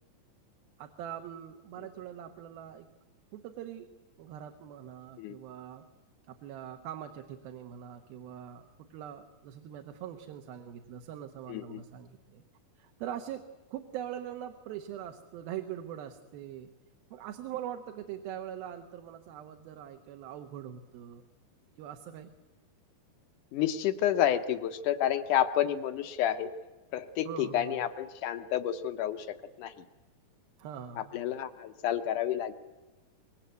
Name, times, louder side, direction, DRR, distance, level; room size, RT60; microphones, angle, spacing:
voice 1, 0.8-2.9 3.3-3.9 4.2-5.9 6.3-12.4 12.8-16.7 17.1-21.2 21.8-22.3 27.3-27.8 30.6-31.1, right 10 dB, 80° right, 5 dB, 2.9 m, -42 dB
voice 2, 11.5-11.8 23.5-26.5 26.9-29.7 31.0-32.5, left 11 dB, 70° left, 10 dB, 2.1 m, -30 dB
25.0 x 21.0 x 8.2 m, 1.2 s
omnidirectional pair, 4.3 m